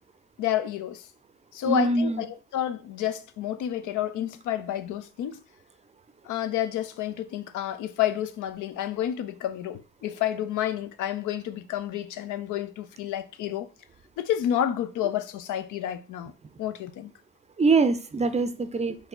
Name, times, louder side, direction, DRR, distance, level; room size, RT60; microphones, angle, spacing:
voice 1, 0.4-1.1 1.5-5.4 6.3-13.7 14.2-16.3 16.6-17.1, left 11 dB, 80° left, 0.5 m, -30 dB
voice 2, 1.6-2.2 17.6-19.1, right 3 dB, 25° right, 0.4 m, -24 dB
4.7 x 2.8 x 3.8 m
cardioid pair, 90°, 30 cm